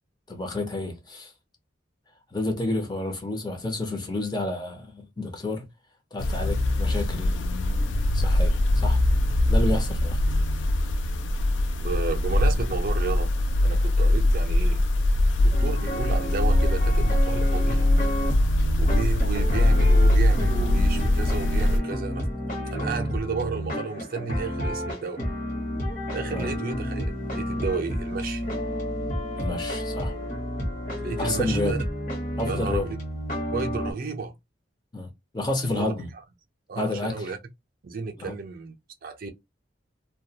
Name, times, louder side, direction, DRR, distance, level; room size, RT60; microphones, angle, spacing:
voice 1, 0.3-1.3 2.3-5.6 6.1-7.4 8.1-9.0 9.5-10.2 26.3-26.5 29.4-30.1 31.2-31.7 32.4-32.9 34.9-36.1 36.8-37.3 38.2-38.3, left 2 dB, 20° left, 0.6 m, -30 dB
sound 1, 6.2-21.8, left 1 dB, 70° left, 0.3 m, -22 dB
voice 2, 11.8-13.3 13.6-14.8 15.4-17.9 18.8-22.3 22.7-25.2 26.1-28.4 31.0-31.8 32.5-33.0 33.5-34.3 35.7-35.9 36.7-37.4 37.8-38.8 39.0-39.3, right 4 dB, 50° right, 0.4 m, -32 dB
sound 2, 15.5-33.9, equal, 40° left, 0.9 m, -31 dB
2.2 x 2.1 x 2.7 m
head